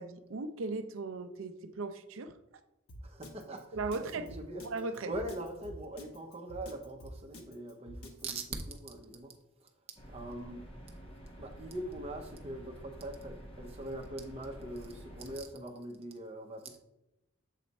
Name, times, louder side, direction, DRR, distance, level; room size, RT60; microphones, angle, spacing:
voice 1, 0.0-2.4 3.7-4.3 4.6-5.1, right 3 dB, 65° right, 9 dB, 0.5 m, -37 dB
Drum kit, 2.9-8.2, equal, 85° left, 1.0 m, -47 dB
voice 2, 3.0-4.6 5.1-9.7 10.1-10.6 11.4-16.8, right 1 dB, 30° right, 2 dB, 0.8 m, -42 dB
sound 1, 10.0-15.4, equal, 25° left, 1.0 m, -49 dB
7.4 x 3.3 x 4.1 m, 0.94 s
head